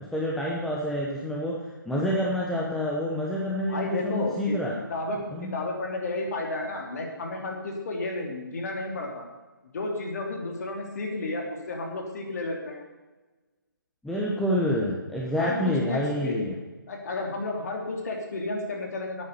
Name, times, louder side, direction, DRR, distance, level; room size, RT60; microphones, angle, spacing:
voice 1, 0.0-4.7 5.3-5.6 14.0-16.5, left 1 dB, ahead, -4 dB, 0.9 m, -28 dB
voice 2, 3.7-4.6 4.9-9.2 9.7-12.8 15.4-16.3 16.9-19.3, left 2 dB, 50° left, 1 dB, 2.8 m, -32 dB
9.3 x 9.1 x 6.9 m, 1.2 s
figure-of-eight pair, 150°, 11 cm